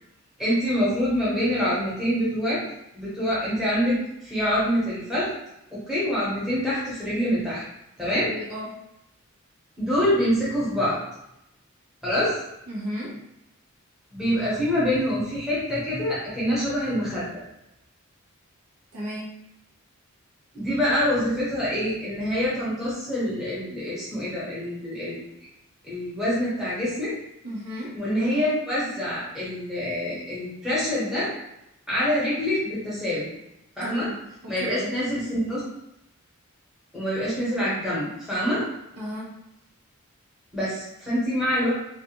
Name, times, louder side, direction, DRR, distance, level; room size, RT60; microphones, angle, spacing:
voice 1, 0.4-2.6 2.9-5.3 5.7-7.6 8.0-8.3 9.8-11.0 12.0-12.3 14.1-17.4 20.5-25.3 25.8-27.1 27.9-31.3 31.9-33.3 33.8-34.1 34.5-35.6 36.9-38.6 40.5-41.7, equal, ahead, -10 dB, 0.9 m, -25 dB
voice 2, 8.2-8.8 12.7-13.2 18.9-19.4 27.4-28.0 33.8-35.0 39.0-39.3, equal, 80° right, -4 dB, 0.8 m, -34 dB
2.4 x 2.3 x 2.8 m, 0.84 s
head